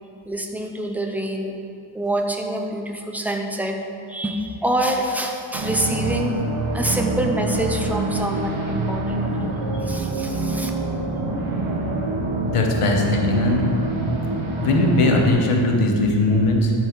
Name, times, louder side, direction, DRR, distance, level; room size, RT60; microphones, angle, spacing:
voice 1, 0.2-1.5 1.9-3.8 4.1-6.4 6.7-9.4 9.8-10.7, right 1 dB, 5° right, 2 dB, 0.5 m, -26 dB
sound 1, 5.5-15.3, right 2 dB, 70° right, 1.3 m, -25 dB
voice 2, 12.4-13.6 14.6-16.7, left 2 dB, 85° left, 1 dB, 1.2 m, -19 dB
11.0 x 4.6 x 4.6 m, 2.6 s
wide cardioid pair, 150°, 50 cm